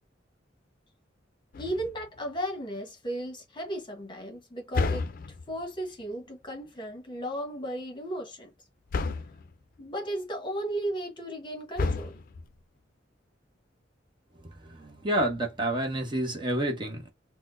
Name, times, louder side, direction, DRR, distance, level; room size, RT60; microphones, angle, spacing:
sound 1, 1.5-2.2 4.7-5.6 8.9-9.5 11.8-12.6, left 3 dB, 50° left, 0.4 m, -31 dB
voice 1, 1.6-5.1 5.5-8.5 9.8-12.2, right 1 dB, 25° left, 1.1 m, -35 dB
voice 2, 14.4-17.1, right 1 dB, 25° right, 0.9 m, -29 dB
4.2 x 2.1 x 2.5 m
head